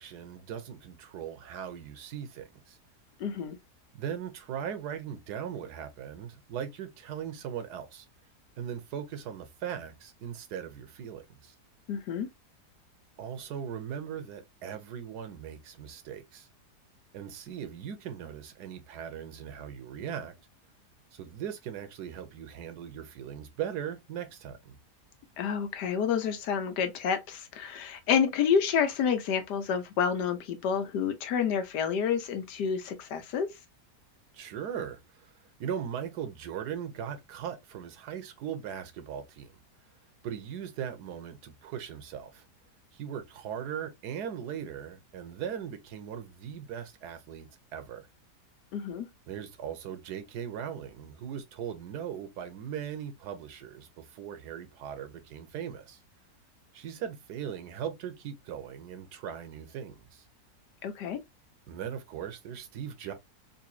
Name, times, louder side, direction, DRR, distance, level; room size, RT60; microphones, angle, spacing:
voice 1, 0.0-2.8 3.9-8.1 8.6-11.5 13.2-16.5 17.1-20.3 21.1-24.8 34.3-35.3 35.6-39.5 40.2-42.4 42.9-48.1 49.3-56.0 56.7-60.2 61.7-63.1, right 8 dB, 80° right, 1.3 m, -39 dB
voice 2, 3.2-3.6 11.9-12.3 25.4-33.5 48.7-49.1 60.8-61.2, left 7 dB, 85° left, 1.4 m, -29 dB
4.0 x 2.7 x 2.7 m
omnidirectional pair, 1.7 m